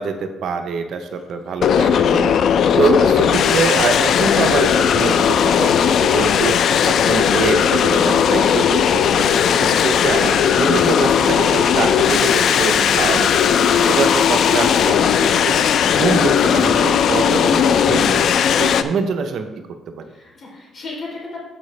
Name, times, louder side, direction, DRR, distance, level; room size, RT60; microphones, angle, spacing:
voice 1, 0.0-2.4 2.7-13.3 13.9-18.3 18.6-19.5 20.0-20.1, right 5 dB, 60° right, 6 dB, 0.7 m, -24 dB
sound 1, 1.6-18.8, left 8 dB, 60° left, 0.4 m, -16 dB
voice 2, 13.6-14.1 20.1-21.4, left 3 dB, 40° left, -3 dB, 3.0 m, -34 dB
13.0 x 4.8 x 3.2 m, 1.1 s
cardioid pair, 140°, 0 cm